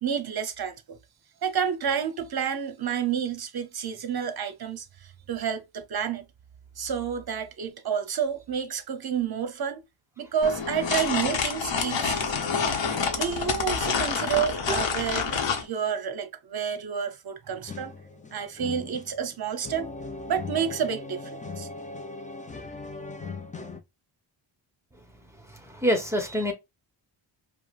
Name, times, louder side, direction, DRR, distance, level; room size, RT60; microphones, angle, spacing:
voice 1, 0.0-1.0 1.4-6.2 6.8-9.8 10.2-12.5 13.1-17.9 18.3-19.9 20.3-21.7, right 7 dB, 50° right, 0.7 m, -30 dB
sound 1, 10.4-15.7, left 5 dB, 60° left, 0.8 m, -27 dB
sound 2, 17.7-23.8, left 3 dB, 15° left, 0.4 m, -39 dB
voice 2, 25.4-26.5, equal, 5° right, 0.9 m, -28 dB
4.7 x 2.1 x 2.4 m
wide cardioid pair, 90°, 49 cm